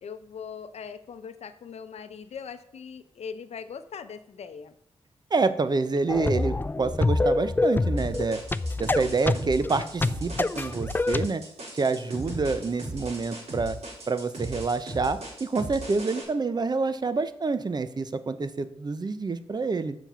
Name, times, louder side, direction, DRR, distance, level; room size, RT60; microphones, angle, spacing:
voice 1, 0.0-4.7, left 6 dB, 70° left, 10 dB, 0.6 m, -40 dB
voice 2, 5.3-8.4 8.8-11.4 11.7-13.8 14.1-20.0, right 4 dB, 40° right, 12 dB, 0.7 m, -27 dB
sound 1, 6.1-11.3, left 3 dB, 20° left, 0.4 m, -26 dB
sound 2, 8.0-16.2, right 1 dB, 65° right, 3.4 m, -38 dB
7.0 x 6.0 x 5.7 m, 0.71 s
cardioid pair, 80°, 11 cm